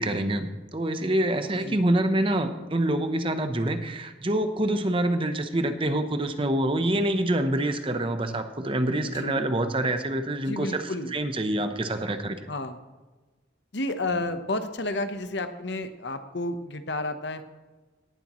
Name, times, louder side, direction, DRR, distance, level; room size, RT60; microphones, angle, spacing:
voice 1, 0.0-10.8 11.1-12.4, right 1 dB, 25° right, 8 dB, 0.8 m, -26 dB
voice 2, 10.4-11.1 12.5-12.8 13.7-17.4, left 2 dB, 60° left, 8 dB, 1.0 m, -31 dB
18.0 x 11.5 x 3.1 m, 1.3 s
head